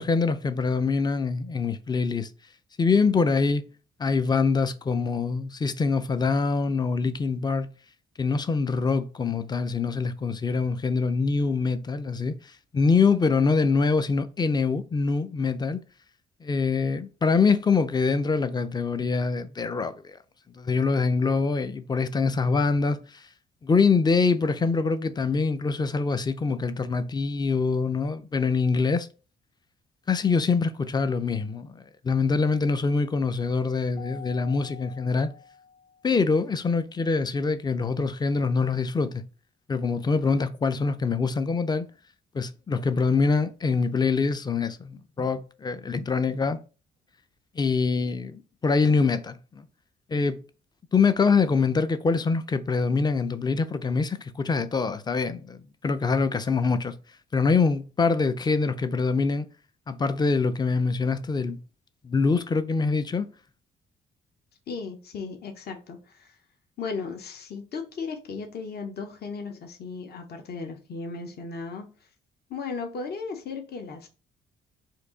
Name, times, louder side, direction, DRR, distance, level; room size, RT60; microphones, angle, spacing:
voice 1, 0.0-2.3 2.8-3.6 4.0-7.7 8.2-12.4 12.7-15.8 16.4-20.2 20.5-23.0 23.6-29.1 30.1-35.3 36.0-39.2 39.7-41.9 42.3-46.6 47.6-49.6 50.1-50.4 50.9-55.6 55.8-57.0 57.3-59.5 59.9-61.6 62.0-63.3, left 4 dB, 20° left, 0.4 m, -24 dB
Keyboard (musical), 34.0-36.2, left 6 dB, 70° left, 1.7 m, -47 dB
voice 2, 64.7-66.3 66.8-71.9 72.5-74.1, left 4 dB, 55° left, 1.0 m, -36 dB
4.5 x 2.7 x 3.8 m
cardioid pair, 90°, 20 cm